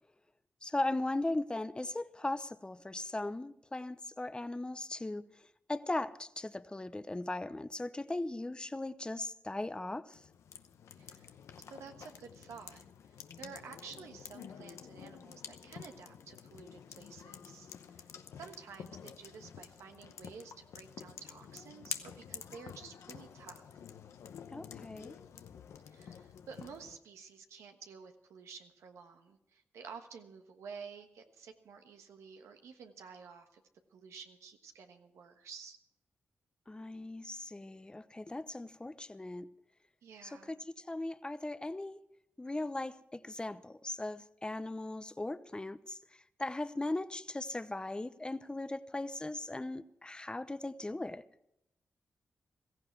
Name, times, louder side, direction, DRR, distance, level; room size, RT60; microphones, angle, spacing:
voice 1, 0.6-10.2 24.5-25.2 36.7-39.5 40.2-42.0 42.4-51.2, left 2 dB, 20° left, 0.8 m, -38 dB
sound 1, 10.1-27.0, left 7 dB, 85° left, 0.8 m, -49 dB
voice 2, 11.0-11.3 11.7-12.8 13.4-18.0 18.4-23.6 25.9-33.6 33.9-35.8 40.0-40.6, right 6 dB, 90° right, 1.3 m, -51 dB
16.5 x 15.0 x 4.6 m
cardioid pair, 55°, 5 cm